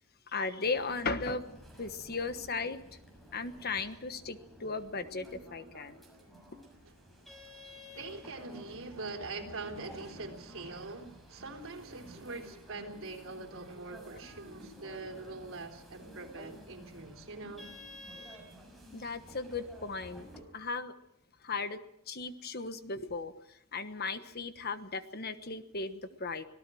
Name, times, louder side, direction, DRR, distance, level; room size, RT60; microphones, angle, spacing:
voice 1, 0.3-1.5 1.8-2.8 3.3-6.0 18.9-20.3 20.5-20.9 21.4-21.8 22.1-26.4, left 4 dB, 50° left, 1.3 m, -36 dB
sound 1, 0.6-20.4, equal, ahead, 6.4 m, -52 dB
voice 2, 7.7-17.7, right 3 dB, 70° right, 3.7 m, -43 dB
26.0 x 18.0 x 6.3 m
head